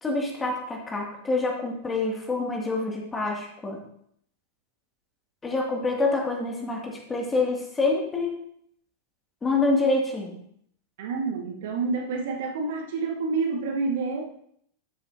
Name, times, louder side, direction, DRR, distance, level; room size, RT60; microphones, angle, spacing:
voice 1, 0.0-3.8 5.4-8.4 9.4-10.3, left 3 dB, 15° left, 0 dB, 2.2 m, -26 dB
voice 2, 11.0-14.4, right 4 dB, 55° right, 2 dB, 1.2 m, -28 dB
12.0 x 7.1 x 2.7 m, 0.70 s
figure-of-eight pair, 90°, 0 cm